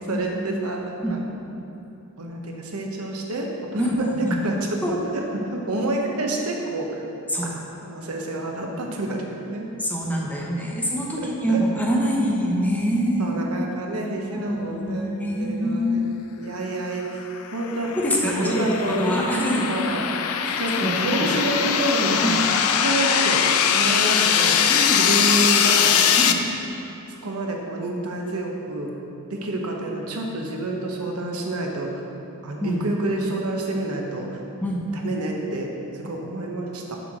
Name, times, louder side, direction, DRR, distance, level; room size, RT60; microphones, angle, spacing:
voice 1, 0.1-1.2 2.2-7.0 7.4-9.7 11.2-11.6 13.2-16.1 16.4-17.2 17.5-17.9 18.3-19.2 19.7-20.0 20.6-22.3 22.6-24.6 24.9-26.0 27.1-28.9 29.3-31.9 32.4-34.4 34.9-37.0, right 2 dB, 85° right, 0 dB, 1.0 m, -28 dB
voice 2, 9.8-13.3 14.3-16.0 17.9-19.7 20.4-21.4 22.2-22.4 24.7-25.0 26.2-26.4 32.6-32.8 34.6-34.9, equal, 5° left, -3 dB, 1.0 m, -25 dB
sound 1, 17.4-26.3, left 8 dB, 75° left, 0.4 m, -21 dB
6.8 x 4.6 x 6.1 m, 3.0 s
head